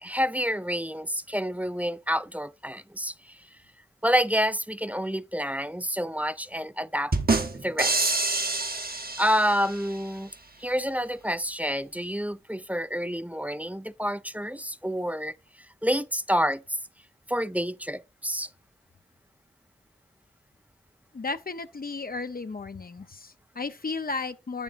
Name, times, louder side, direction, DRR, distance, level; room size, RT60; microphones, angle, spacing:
voice 1, 0.0-3.4 4.0-7.1 7.5-8.1 9.2-10.3 10.6-15.3 15.8-16.6 17.3-18.5, equal, 10° right, 0.4 m, -28 dB
sound 1, 7.1-9.9, right 3 dB, 55° right, 1.2 m, -27 dB
voice 2, 21.1-24.6, left 3 dB, 55° left, 0.7 m, -34 dB
8.8 x 7.0 x 2.5 m
wide cardioid pair, 55°, 19 cm